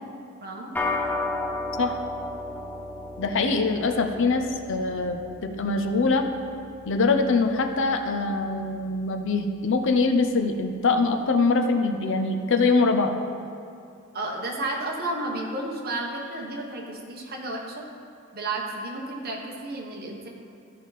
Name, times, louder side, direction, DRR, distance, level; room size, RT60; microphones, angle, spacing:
voice 1, 0.4-0.7 14.1-17.8 18.3-20.3, right 2 dB, 45° right, 0 dB, 1.3 m, -32 dB
sound 1, 0.8-10.3, left 2 dB, 10° left, 0.7 m, -35 dB
voice 2, 3.2-6.3 6.9-13.1, left 3 dB, 60° left, 6 dB, 0.6 m, -23 dB
13.5 x 5.5 x 4.2 m, 2.5 s
head